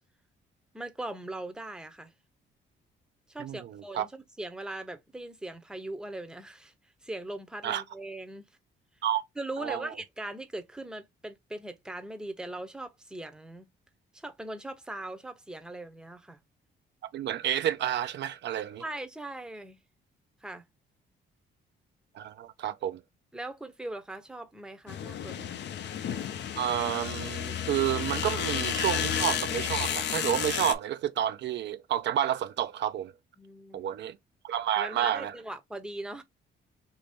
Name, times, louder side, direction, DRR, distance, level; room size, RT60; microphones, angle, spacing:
voice 1, 0.7-2.1 3.3-6.7 7.0-8.5 9.4-13.7 14.1-16.4 18.8-19.8 20.4-20.6 23.3-25.6 33.4-33.9 34.8-36.2, right 2 dB, 5° right, 0.6 m, -40 dB
voice 2, 3.4-4.1 7.6-7.8 9.0-9.2 9.6-9.9 17.1-18.8 22.2-23.0 26.6-33.1 33.7-34.2 34.4-35.3, right 11 dB, 65° right, 0.4 m, -30 dB
sound 1, 24.9-30.7, left 9 dB, 60° left, 0.6 m, -32 dB
2.9 x 2.7 x 3.4 m
cardioid pair, 90°, 20 cm